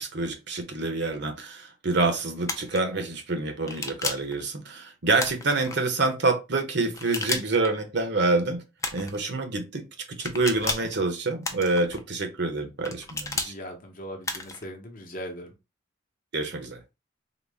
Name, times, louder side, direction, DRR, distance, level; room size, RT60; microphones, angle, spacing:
voice 1, 0.0-8.6 8.9-13.5 16.3-16.8, right 3 dB, 60° right, 0.8 m, -27 dB
sound 1, 2.4-2.8 3.7-4.3 5.2-5.8 6.9-7.7 8.8-9.2 10.2-10.9 11.4-12.0 12.8-13.5 14.2-14.6, left 3 dB, 15° left, 0.4 m, -32 dB
voice 2, 13.4-15.5, equal, 45° left, 0.8 m, -39 dB
3.9 x 2.1 x 3.4 m
head